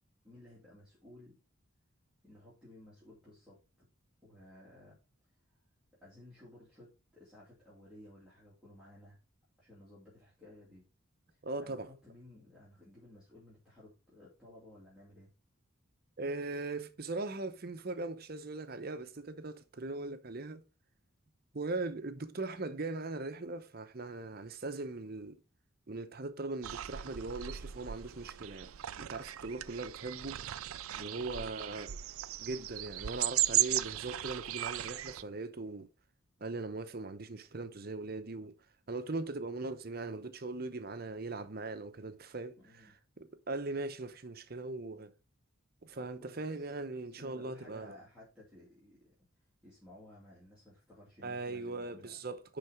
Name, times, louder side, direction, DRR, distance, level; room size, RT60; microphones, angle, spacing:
voice 1, 0.2-1.4 2.2-3.6 4.2-5.0 6.0-9.2 9.6-10.8 11.3-15.3 30.9-31.9 42.5-42.9 45.9-46.7 47.1-49.1 49.6-52.2, left 1 dB, 5° right, 2.5 m, -56 dB
voice 2, 11.4-11.9 16.2-20.6 21.5-25.4 25.9-30.4 31.0-31.9 32.4-35.9 36.4-38.5 38.9-45.1 45.8-47.9 51.2-52.6, right 3 dB, 45° right, 0.8 m, -40 dB
sound 1, 26.6-35.2, right 14 dB, 90° right, 0.5 m, -36 dB
10.0 x 4.0 x 4.8 m
head